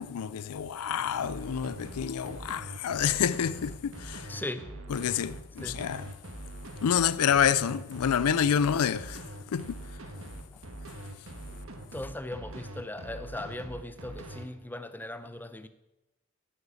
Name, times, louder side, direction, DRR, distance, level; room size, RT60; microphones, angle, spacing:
voice 1, 0.0-4.3 4.9-6.1 6.8-10.0, left 8 dB, 85° left, 0.4 m, -28 dB
sound 1, 1.2-14.4, right 1 dB, 65° right, 1.6 m, -43 dB
voice 2, 4.3-4.8 5.6-5.8 10.5-10.6 11.9-15.7, left 1 dB, 10° left, 0.6 m, -38 dB
11.0 x 6.8 x 8.3 m
head